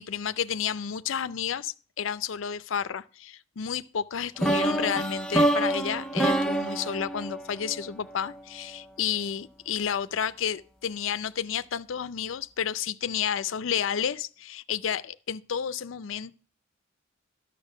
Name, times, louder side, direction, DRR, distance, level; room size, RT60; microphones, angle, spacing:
voice 1, 0.0-16.3, left 8 dB, 70° left, 0.5 m, -31 dB
sound 1, 4.4-8.4, right 1 dB, 5° left, 0.5 m, -26 dB
11.0 x 6.4 x 5.6 m
head